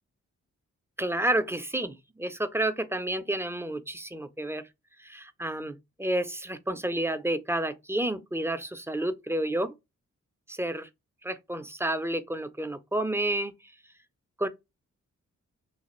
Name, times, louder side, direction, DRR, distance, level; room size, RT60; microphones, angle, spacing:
voice 1, 1.0-4.6 5.0-9.7 10.5-10.9 11.2-13.5 14.4-14.5, right 1 dB, 10° right, 0.4 m, -30 dB
3.2 x 2.3 x 3.0 m
cardioid pair, 65°, 30 cm